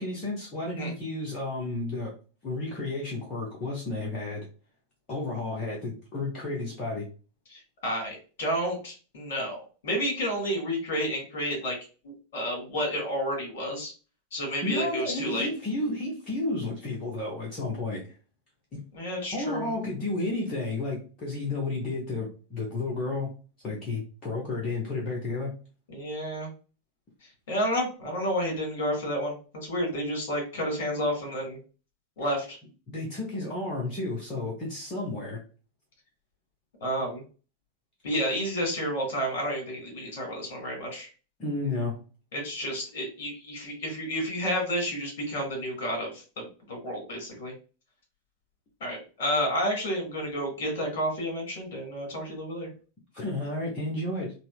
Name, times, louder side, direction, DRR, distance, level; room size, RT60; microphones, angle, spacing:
voice 1, 0.0-2.1 2.4-4.5 5.1-7.1 14.6-18.1 18.7-18.8 19.3-23.3 23.6-25.5 32.2-32.3 32.9-35.4 41.4-42.0 53.1-54.3, left 2 dB, 30° left, -3 dB, 0.8 m, -32 dB
voice 2, 7.5-11.8 12.0-13.9 14.3-15.5 18.9-19.7 25.9-26.5 27.5-31.6 32.2-32.6 36.8-37.2 38.0-41.1 42.3-47.5 48.8-52.7, equal, 55° left, 2 dB, 1.5 m, -30 dB
4.1 x 2.1 x 2.4 m, 0.35 s
figure-of-eight pair, 90°, 0 cm